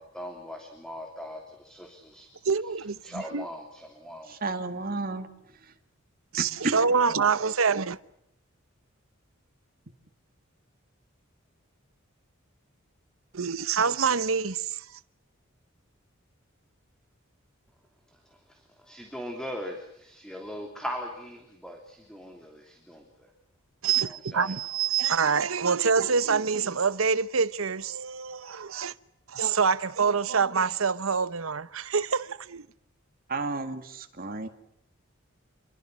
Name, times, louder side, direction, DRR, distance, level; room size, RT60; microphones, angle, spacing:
voice 1, 0.0-2.3 3.0-4.3 18.5-23.3 24.1-24.5, equal, 5° left, 3.0 m, -40 dB
voice 2, 2.4-3.5 6.3-8.0 13.3-14.9 23.8-28.9 29.3-32.7, right 5 dB, 80° right, 0.9 m, -26 dB
voice 3, 4.3-5.3 6.4-6.7 33.3-34.5, right 3 dB, 45° right, 2.2 m, -32 dB
28.0 x 22.5 x 6.4 m
head